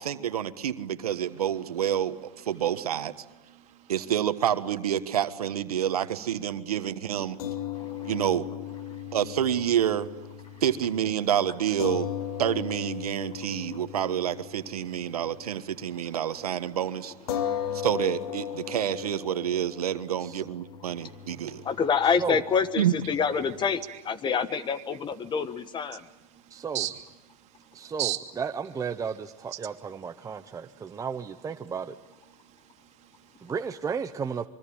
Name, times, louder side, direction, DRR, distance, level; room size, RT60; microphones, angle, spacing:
voice 1, 0.0-3.1 3.9-7.4 8.0-8.5 9.1-10.1 10.6-12.1 12.4-17.1 17.7-21.6 22.8-22.9, right 10 dB, 90° right, 1.5 m, -28 dB
voice 2, 3.5-3.9 7.8-8.0 8.9-9.1 10.5-10.6 17.4-17.9 21.3-21.7 23.9-24.0 25.9-26.1 26.3-27.0 27.4-28.2 32.4-33.5, right 14 dB, 35° right, 2.9 m, -38 dB
sound 1, 7.4-15.9 16.2-16.4 17.3-23.8, left 9 dB, 75° left, 2.4 m, -37 dB
voice 3, 7.5-8.1 17.4-17.5 21.5-26.1, left 6 dB, 25° left, 1.3 m, -27 dB
voice 4, 26.5-26.9 27.7-31.9 33.4-34.5, right 6 dB, 15° right, 0.9 m, -34 dB
25.0 x 23.5 x 8.7 m
hypercardioid pair, 115°, 19 cm